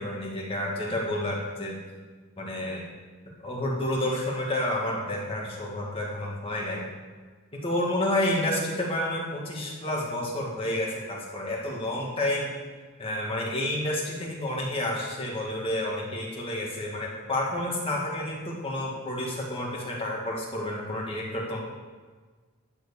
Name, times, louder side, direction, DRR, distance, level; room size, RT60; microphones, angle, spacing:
voice 1, 0.0-1.8 2.4-2.8 3.4-6.8 7.5-12.6 13.0-21.6, left 1 dB, 25° left, -3 dB, 2.0 m, -30 dB
11.0 x 4.6 x 7.0 m, 1.4 s
head